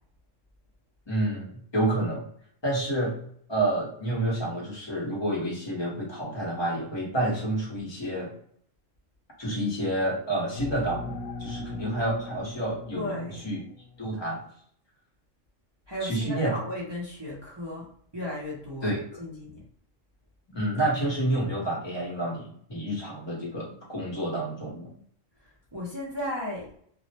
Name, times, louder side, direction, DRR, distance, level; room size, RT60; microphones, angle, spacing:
voice 1, 1.1-2.3 2.6-3.2 3.5-8.3 9.4-13.6 14.0-14.4 16.0-16.6 18.8-19.2 20.5-24.9, right 1 dB, 25° left, -3 dB, 0.7 m, -29 dB
sound 1, 10.6-14.0, left 3 dB, 75° left, 0.9 m, -39 dB
voice 2, 12.9-13.4 15.9-19.6 25.4-26.8, left 1 dB, 35° right, -6 dB, 0.4 m, -35 dB
2.4 x 2.0 x 2.8 m, 0.62 s
omnidirectional pair, 1.3 m